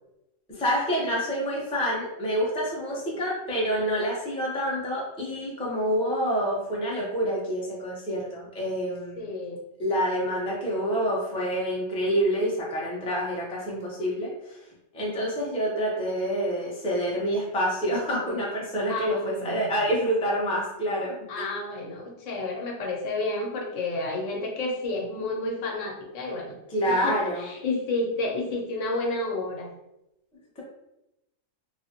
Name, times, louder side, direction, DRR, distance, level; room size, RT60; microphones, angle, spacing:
voice 1, 0.5-9.3 9.8-14.6 14.9-21.5 26.7-27.4, equal, 10° left, -4 dB, 0.4 m, -27 dB
voice 2, 9.2-9.6 18.9-19.7 21.3-26.6 26.9-29.7, left 2 dB, 75° left, 0 dB, 1.0 m, -31 dB
3.2 x 2.0 x 2.8 m, 0.89 s
omnidirectional pair, 1.4 m